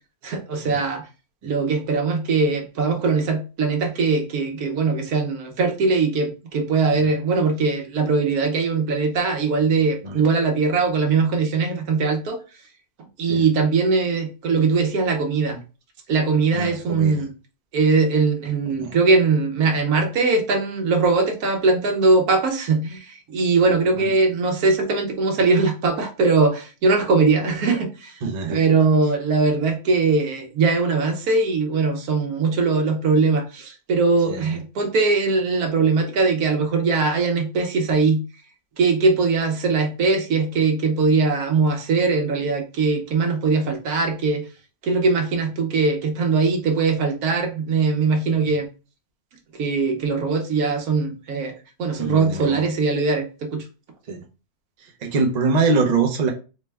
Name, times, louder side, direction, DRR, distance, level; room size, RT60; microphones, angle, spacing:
voice 1, 0.2-1.1 1.4-12.4 13.2-15.6 16.1-17.3 17.7-38.2 38.8-44.4 44.8-48.7 49.5-51.5 51.8-53.6, right 4 dB, 75° right, 1.2 m, -21 dB
voice 2, 16.5-17.2 18.8-19.0 23.9-24.0 28.2-28.6 34.3-34.5 52.0-52.7 54.1-54.2 55.0-56.3, right 4 dB, 50° right, 0.5 m, -24 dB
4.0 x 2.2 x 3.3 m
omnidirectional pair, 1.6 m